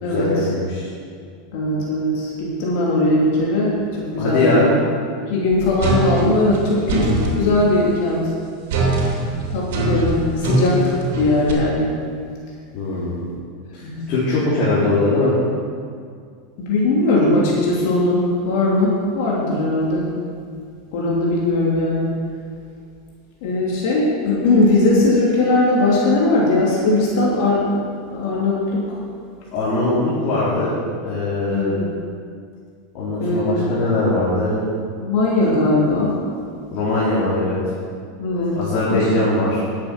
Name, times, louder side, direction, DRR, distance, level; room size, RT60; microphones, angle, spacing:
voice 1, 0.0-0.9 4.2-4.7 12.7-13.3 13.7-15.3 29.5-30.7 31.0-31.8 32.9-34.6 36.7-37.6 38.5-39.6, left 2 dB, 45° left, -8 dB, 3.4 m, -21 dB
voice 2, 1.5-4.7 5.3-8.3 9.5-11.9 13.8-14.0 16.6-20.1 20.9-22.1 23.4-27.7 28.1-28.8 31.5-31.9 33.2-33.5 35.0-36.2 38.2-38.6 38.9-39.1, left 2 dB, 65° left, -5 dB, 3.0 m, -19 dB
sound 1, 5.8-7.4 8.7-11.5, right 2 dB, 75° right, 3.1 m, -21 dB
11.0 x 8.3 x 6.0 m, 2.1 s
supercardioid pair, 140°, 0 cm